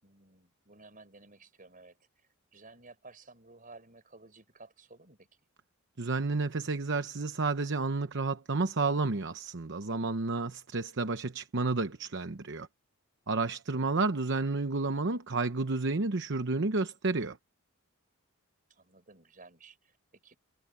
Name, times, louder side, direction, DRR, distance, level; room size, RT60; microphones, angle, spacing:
voice 1, 0.0-5.3 18.7-20.4, right 3 dB, 40° right, 6.3 m, -55 dB
voice 2, 6.0-12.7 13.3-17.4, right 3 dB, 60° right, 0.9 m, -31 dB
head